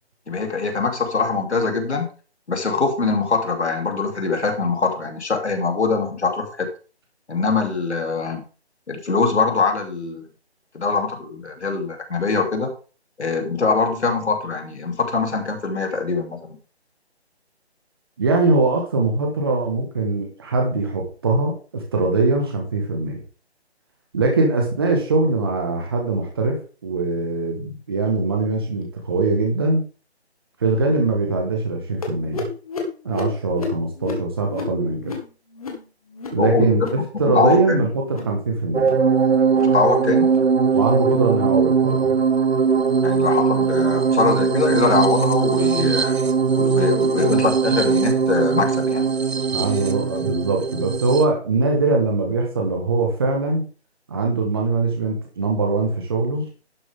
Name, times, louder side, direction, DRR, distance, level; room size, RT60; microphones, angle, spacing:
voice 1, 0.3-2.1 2.5-6.7 7.3-8.4 8.9-10.2 10.7-12.7 13.2-16.6 36.4-36.9 37.3-37.9 39.5-40.3 43.0-46.2 46.6-49.1, left 4 dB, 80° left, 3 dB, 3.2 m, -22 dB
voice 2, 18.2-23.2 24.1-29.8 30.6-32.5 33.0-35.1 36.3-38.9 40.7-42.1 49.5-53.6 54.1-56.5, right 3 dB, 20° right, 1 dB, 1.5 m, -22 dB
sound 1, 32.0-37.1 37.3-37.7 38.0-38.4 38.7-39.1 39.4-39.8 40.2-40.5 41.0-41.3 41.8-42.0 42.6-42.8 43.4-43.6 44.3-44.4 45.2-45.3, left 4 dB, 35° left, 1.9 m, -34 dB
sound 2, 38.7-51.3, right 5 dB, 65° right, 1.2 m, -20 dB
11.5 x 7.5 x 3.7 m, 0.36 s
hypercardioid pair, 170°, 33 cm